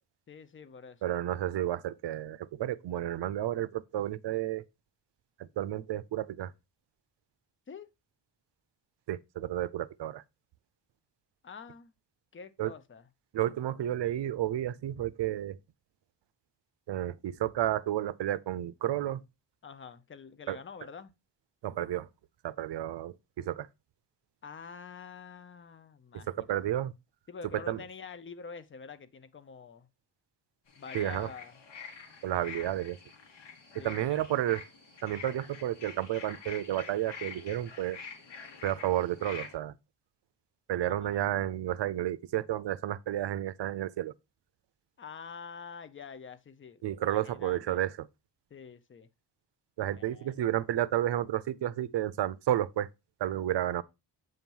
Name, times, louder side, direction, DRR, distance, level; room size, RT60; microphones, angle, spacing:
voice 1, 0.3-1.1 7.7-7.9 11.4-11.9 12.3-13.1 19.6-21.1 24.4-26.6 27.3-29.9 30.8-31.6 33.8-34.2 40.9-41.3 45.0-46.8 47.1-47.8 48.5-49.1 49.9-50.3, left 5 dB, 30° left, 0.6 m, -47 dB
voice 2, 1.0-4.6 5.6-6.5 9.1-10.2 12.6-12.7 13.3-15.6 16.9-19.2 20.5-20.6 21.6-22.1 22.4-23.7 26.1-26.9 27.7-27.8 30.9-31.3 32.2-33.0 33.8-34.6 35.0-38.0 38.6-39.7 40.7-44.1 46.8-48.1 49.8-52.9 53.2-53.8, right 12 dB, 75° right, 0.6 m, -31 dB
sound 1, 30.7-39.6, left 6 dB, 80° left, 1.7 m, -47 dB
7.8 x 3.0 x 5.3 m
wide cardioid pair, 125°, 43 cm